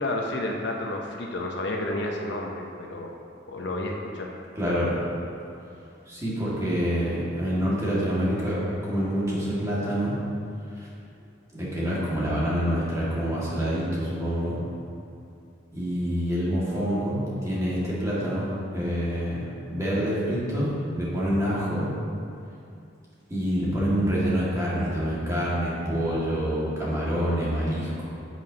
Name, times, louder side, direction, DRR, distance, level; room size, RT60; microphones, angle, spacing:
voice 1, 0.0-3.1 3.5-4.3, left 1 dB, 60° left, 1 dB, 0.7 m, -31 dB
voice 2, 4.6-5.0 6.1-10.1 10.7-10.9 11.5-14.6 15.7-21.9 23.3-28.0, equal, 15° right, -8 dB, 1.9 m, -27 dB
10.0 x 7.5 x 2.8 m, 2.5 s
head